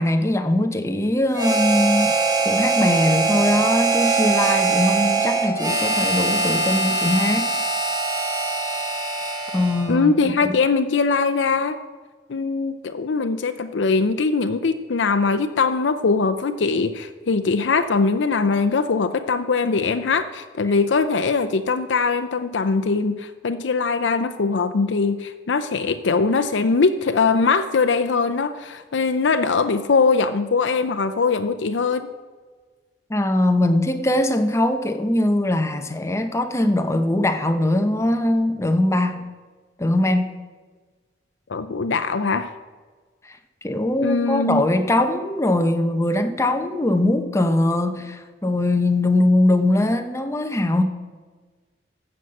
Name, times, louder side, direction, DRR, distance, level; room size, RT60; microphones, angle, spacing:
voice 1, 0.0-2.1 2.4-7.5 9.5-10.5 33.1-39.2 39.8-40.3 43.6-50.8, left 1 dB, 15° left, 7 dB, 0.8 m, -21 dB
Harmonica, 1.3-10.0, right 3 dB, 20° right, 1.4 m, -22 dB
voice 2, 9.9-11.8 12.3-32.1 41.5-42.5 44.0-44.6, left 4 dB, 80° left, 9 dB, 0.5 m, -21 dB
14.5 x 5.5 x 7.6 m, 1.4 s
head